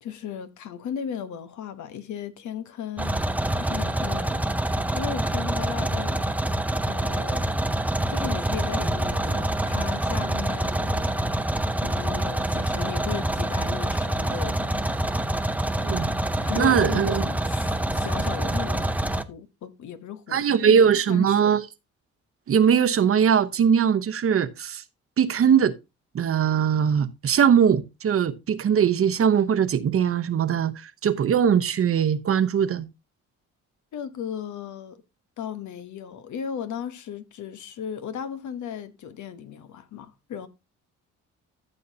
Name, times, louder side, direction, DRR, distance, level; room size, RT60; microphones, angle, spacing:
voice 1, 0.0-3.2 3.6-6.3 6.8-7.5 8.1-11.2 11.7-14.9 16.4-20.8 21.1-21.5 33.9-35.0 35.4-40.5, left 8 dB, 70° left, 1.1 m, -36 dB
sound 1, 3.0-19.2, right 1 dB, 5° right, 0.6 m, -26 dB
voice 2, 16.6-17.3 20.3-21.7 22.5-24.8 25.2-25.7 26.1-32.9, right 7 dB, 50° right, 0.9 m, -21 dB
14.0 x 6.5 x 2.8 m
cardioid pair, 90°, 30 cm